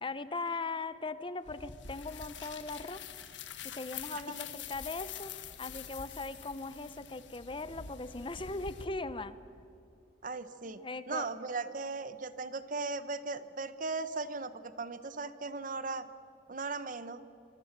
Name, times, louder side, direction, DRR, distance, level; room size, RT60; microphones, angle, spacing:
voice 1, 0.0-3.0 3.6-5.3 5.6-9.3 10.6-11.3, left 3 dB, 30° left, 13 dB, 0.8 m, -39 dB
sound 1, 1.4-8.8, left 8 dB, 85° left, 1.6 m, -46 dB
voice 2, 10.2-10.8 11.1-16.1 16.5-17.2, right 3 dB, 45° right, 12 dB, 1.0 m, -38 dB
25.5 x 25.0 x 6.7 m, 2.7 s
head